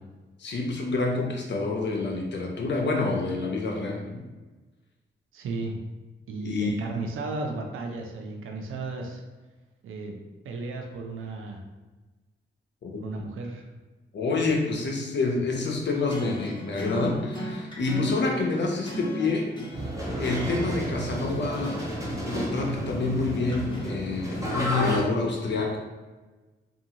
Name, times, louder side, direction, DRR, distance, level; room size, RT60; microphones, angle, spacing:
voice 1, 0.4-4.2 6.4-6.7 12.8-13.0 14.1-19.5 20.2-21.8 22.2-25.8, left 3 dB, 60° left, 0 dB, 0.6 m, -28 dB
voice 2, 5.3-5.8 6.3-9.2 9.8-11.6 13.0-13.7, right 3 dB, 80° right, 2 dB, 0.5 m, -34 dB
sound 1, 15.9-24.4, equal, 20° left, 0.9 m, -38 dB
sound 2, 19.7-25.0, equal, 15° right, 0.8 m, -31 dB
2.6 x 2.4 x 2.8 m, 1.2 s
cardioid pair, 55°, 21 cm